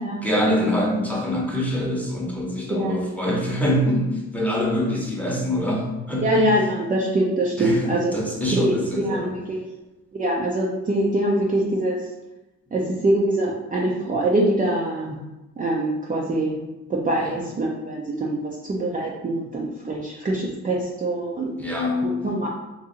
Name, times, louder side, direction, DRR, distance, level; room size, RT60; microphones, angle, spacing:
voice 1, 0.2-6.4 7.6-7.8 8.1-9.3 17.2-17.4 21.6-22.2, equal, 5° left, -3 dB, 0.9 m, -24 dB
voice 2, 2.7-3.1 6.2-8.2 8.5-9.6 10.1-12.0 12.7-15.2 15.6-16.6 16.9-21.5 22.0-22.5, right 1 dB, 25° right, -3 dB, 0.5 m, -24 dB
2.8 x 2.6 x 3.8 m, 1.0 s
cardioid pair, 90°, 30 cm